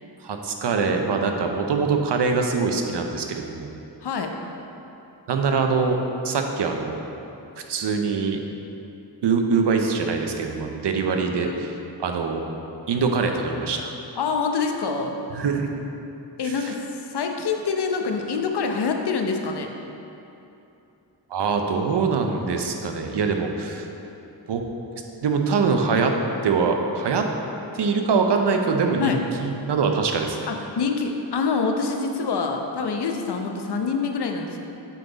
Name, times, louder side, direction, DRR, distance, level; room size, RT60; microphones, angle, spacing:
voice 1, 0.2-3.7 5.3-6.0 6.2-7.0 7.6-8.4 9.2-11.7 12.0-12.4 12.9-13.9 15.3-15.8 16.4-16.7 21.3-23.9 24.5-24.6 25.2-26.1 26.4-27.3 27.7-30.5, right 5 dB, 65° right, 4 dB, 0.7 m, -23 dB
voice 2, 11.0-11.6 14.2-15.2 16.4-19.7 29.0-29.2 30.5-34.6, left 5 dB, 60° left, 3 dB, 0.7 m, -26 dB
8.5 x 3.9 x 4.0 m, 2.9 s
cardioid pair, 70°, 45 cm